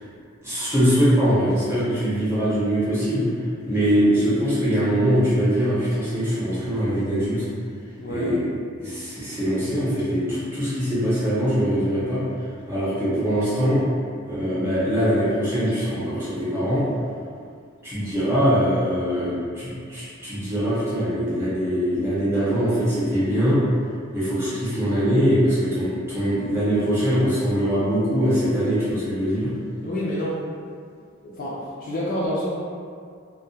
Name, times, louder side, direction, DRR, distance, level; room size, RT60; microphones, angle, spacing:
voice 1, 0.4-3.3 3.6-7.5 8.1-8.5 8.8-12.2 12.7-13.8 14.2-16.8 17.8-23.6 24.1-29.5, equal, 10° right, -12 dB, 0.8 m, -22 dB
voice 2, 8.0-8.3 29.8-30.4 31.2-32.5, equal, 40° left, -7 dB, 0.3 m, -28 dB
2.2 x 2.1 x 2.7 m, 2.2 s
head